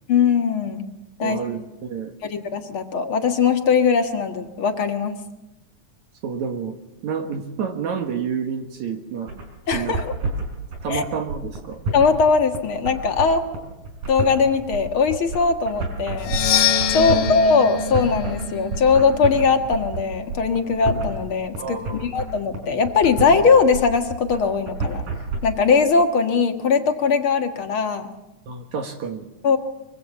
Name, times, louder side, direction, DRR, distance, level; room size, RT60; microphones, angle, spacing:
voice 1, 0.1-0.8 1.2-1.4 2.2-5.2 9.7-10.1 10.9-11.0 11.9-13.4 14.1-16.4 16.9-25.0 25.4-28.1 29.4-29.6, left 5 dB, 45° left, 6 dB, 2.1 m, -20 dB
voice 2, 1.2-2.1 6.2-6.8 7.0-9.3 9.7-10.0 10.8-11.8 16.9-17.3 21.6-22.1 28.5-29.3, right 6 dB, 65° right, 5 dB, 2.8 m, -29 dB
sound 1, 9.3-25.4, right 3 dB, 90° right, 6.9 m, -29 dB
Percussion, 16.2-20.0, left 7 dB, 90° left, 3.0 m, -25 dB
24.5 x 23.5 x 7.2 m, 0.95 s
omnidirectional pair, 3.6 m